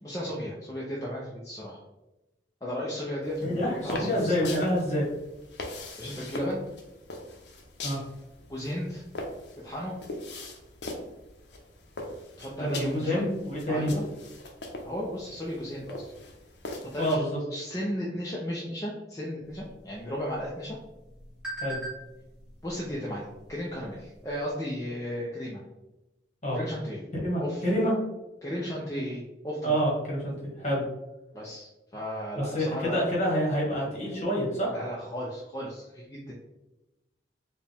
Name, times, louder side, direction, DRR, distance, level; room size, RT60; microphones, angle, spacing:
voice 1, 0.0-1.8 2.6-4.5 6.0-6.6 8.5-9.0 9.6-9.9 12.4-13.2 13.7-14.1 14.8-16.0 16.8-20.8 22.6-25.6 26.5-27.0 27.4-27.6 28.4-29.8 31.3-33.0 34.7-36.3, equal, 20° left, -5 dB, 0.5 m, -35 dB
sound 1, 3.2-17.2, left 2 dB, 80° left, 0.7 m, -41 dB
voice 2, 3.4-5.0 7.8-8.0 12.6-13.9 17.0-17.4 21.6-21.8 26.4-26.6 27.2-27.9 29.6-30.8 32.4-34.7, equal, 40° left, -4 dB, 1.3 m, -27 dB
sound 2, 19.4-24.5, right 2 dB, 5° right, 1.2 m, -44 dB
4.7 x 2.3 x 3.4 m, 1.0 s
head